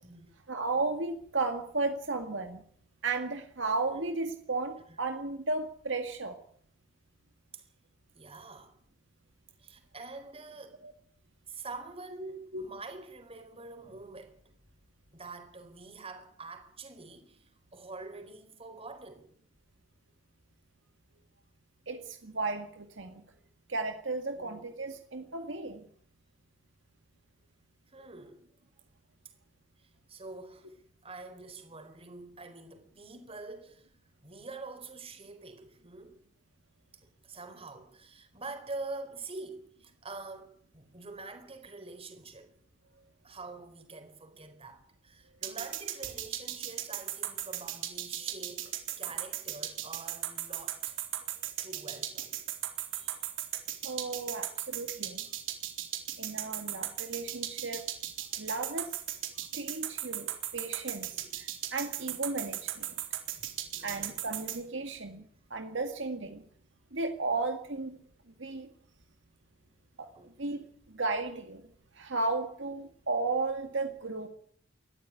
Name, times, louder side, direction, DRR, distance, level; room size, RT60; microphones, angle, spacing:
voice 1, 0.5-2.6 3.0-6.4 10.8-10.9 12.5-12.7 21.9-23.2 23.7-25.8 53.8-55.2 56.2-57.9 58.4-59.0 59.5-60.3 60.5-62.9 63.8-65.2 65.5-66.4 66.9-68.0 68.4-68.7 70.0-70.1 70.4-70.6 70.9-71.6 72.0-74.3, right 3 dB, 70° right, 2.0 m, -34 dB
voice 2, 8.1-8.7 9.6-10.8 11.5-14.4 15.1-19.3 24.4-24.6 27.9-28.4 29.8-30.7 31.0-33.9 34.2-36.2 37.0-42.5 43.2-51.0 51.6-52.4 52.9-53.2 61.0-61.3 62.0-62.2 63.0-64.2 70.1-70.3, right 3 dB, 30° right, 4.2 m, -46 dB
sound 1, 45.4-64.6, right 12 dB, 85° right, 4.0 m, -36 dB
20.5 x 14.0 x 9.7 m
head